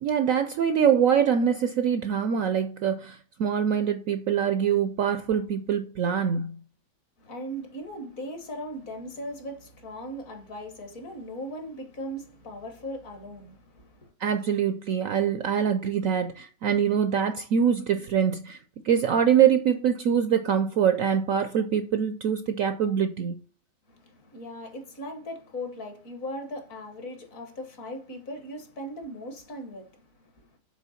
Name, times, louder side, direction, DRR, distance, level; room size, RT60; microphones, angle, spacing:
voice 1, 0.0-6.6 14.2-18.6 18.8-23.4, right 8 dB, 70° right, 0.8 m, -24 dB
voice 2, 7.2-14.1 23.9-30.6, equal, 50° left, 1.7 m, -39 dB
7.5 x 3.3 x 5.7 m
omnidirectional pair, 1.9 m